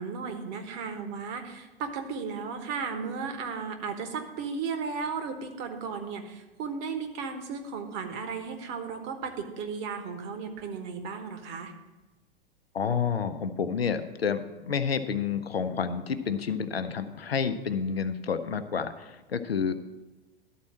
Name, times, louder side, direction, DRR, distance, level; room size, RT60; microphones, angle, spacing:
voice 1, 0.0-11.7, right 5 dB, 40° right, 6 dB, 1.2 m, -35 dB
voice 2, 12.7-19.7, left 6 dB, 80° left, 10 dB, 0.7 m, -29 dB
12.0 x 4.3 x 7.3 m, 1.1 s
figure-of-eight pair, 95°, 30 cm